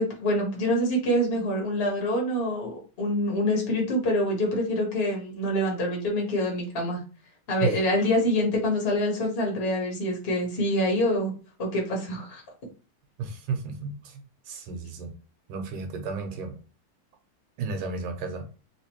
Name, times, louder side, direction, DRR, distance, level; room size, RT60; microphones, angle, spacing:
voice 1, 0.0-7.0 7.5-11.3 11.6-12.4, equal, 35° left, -1 dB, 1.1 m, -26 dB
voice 2, 13.2-15.1 15.5-16.6 17.6-18.5, right 5 dB, 80° right, 4 dB, 1.6 m, -33 dB
3.5 x 2.9 x 3.0 m, 0.36 s
omnidirectional pair, 2.4 m